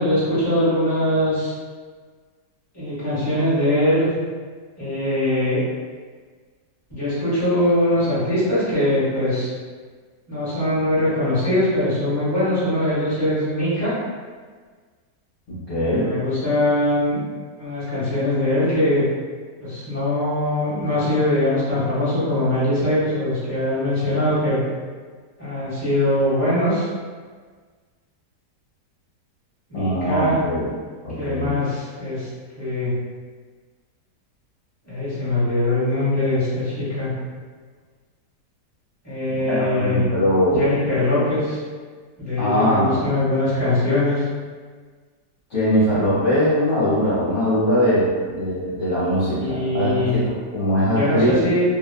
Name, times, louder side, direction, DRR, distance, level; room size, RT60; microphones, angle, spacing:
voice 1, 0.0-1.5 2.7-4.1 4.8-5.6 6.9-9.5 10.3-13.9 15.8-17.2 17.6-19.0 19.6-24.6 25.4-26.9 29.7-30.4 31.1-32.3 32.6-32.9 34.8-37.1 39.0-40.0 40.5-41.6 42.2-44.2 49.3-50.2 50.9-51.6, left 1 dB, 10° left, -12 dB, 1.0 m, -22 dB
voice 2, 15.5-16.1 29.7-30.7 31.0-31.5 39.5-40.6 40.9-41.0 42.4-43.0 45.5-51.5, equal, 55° left, -13 dB, 1.1 m, -21 dB
2.8 x 2.3 x 2.2 m, 1.5 s
omnidirectional pair, 1.8 m